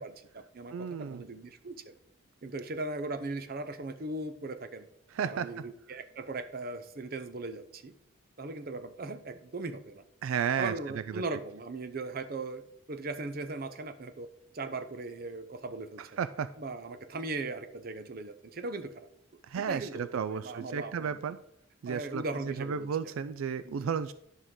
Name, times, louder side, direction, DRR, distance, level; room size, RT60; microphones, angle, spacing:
voice 1, 0.0-1.9 2.4-4.9 5.2-7.9 8.4-10.0 10.6-12.6 12.9-16.2 16.6-19.1 19.5-21.2 21.9-22.9 23.6-23.9, right 2 dB, 45° right, 10 dB, 0.6 m, -39 dB
voice 2, 0.7-1.2 5.1-5.5 10.2-10.7 11.1-11.2 16.0-16.5 19.5-21.4 21.8-24.1, right 7 dB, 80° right, 13 dB, 0.4 m, -33 dB
10.0 x 6.3 x 3.7 m, 0.74 s
head